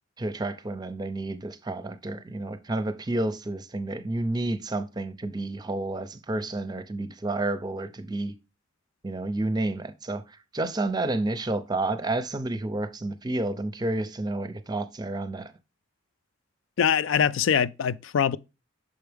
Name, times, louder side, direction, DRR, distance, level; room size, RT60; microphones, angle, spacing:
voice 1, 0.2-8.3 9.0-15.5, right 2 dB, 20° right, 0.6 m, -30 dB
voice 2, 16.8-18.4, left 7 dB, 80° left, 0.4 m, -23 dB
6.5 x 4.6 x 3.4 m
head